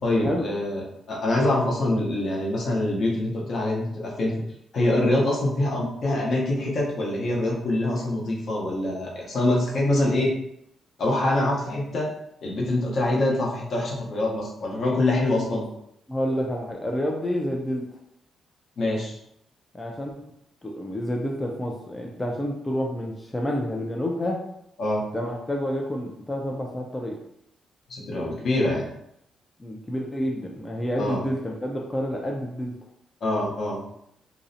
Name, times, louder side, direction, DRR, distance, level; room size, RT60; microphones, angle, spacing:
voice 1, 0.0-0.8 1.1-4.3 4.7-10.3 11.0-12.1 12.4-15.6 18.8-19.2 24.8-25.0 27.9-28.9 31.0-31.2 33.2-33.8, left 1 dB, 55° left, -3 dB, 0.7 m, -24 dB
voice 2, 16.1-17.8 19.7-20.1 20.6-24.4 25.1-27.2 29.6-32.7, equal, 15° left, -1 dB, 0.3 m, -29 dB
2.5 x 2.0 x 2.6 m, 0.76 s
cardioid pair, 105°, 0 cm